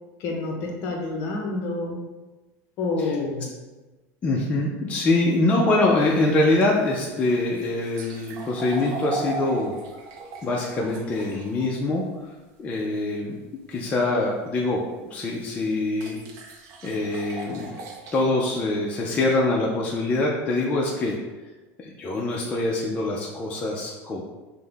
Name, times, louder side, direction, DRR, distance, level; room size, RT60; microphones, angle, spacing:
voice 1, 0.2-2.0 2.8-3.5, left 3 dB, 45° left, 1 dB, 0.7 m, -28 dB
voice 2, 4.2-9.8 10.4-12.3 12.6-13.4 13.7-14.8 15.1-16.2 16.8-17.8 18.1-21.2 21.8-24.2, left 2 dB, 20° left, -3 dB, 0.4 m, -24 dB
sound 1, 6.1-11.7 14.8-14.9 16.0-18.3, right 3 dB, 50° right, 0.5 m, -37 dB
5.5 x 2.1 x 3.4 m, 1.2 s
cardioid pair, 165°, 7 cm